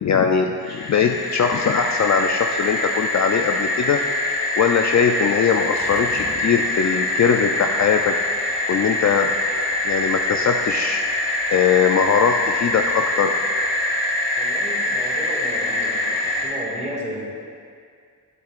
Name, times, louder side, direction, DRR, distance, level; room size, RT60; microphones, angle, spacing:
voice 1, 0.0-4.1 4.6-8.2 8.7-9.3 9.8-11.0 11.5-13.3, left 7 dB, 45° left, 4 dB, 0.4 m, -20 dB
sound 1, 0.6-16.5, left 2 dB, 70° left, 2.1 m, -24 dB
voice 2, 14.4-17.2, right 1 dB, 15° right, -5 dB, 1.9 m, -33 dB
12.5 x 8.6 x 2.5 m, 2.2 s
wide cardioid pair, 105°, 38 cm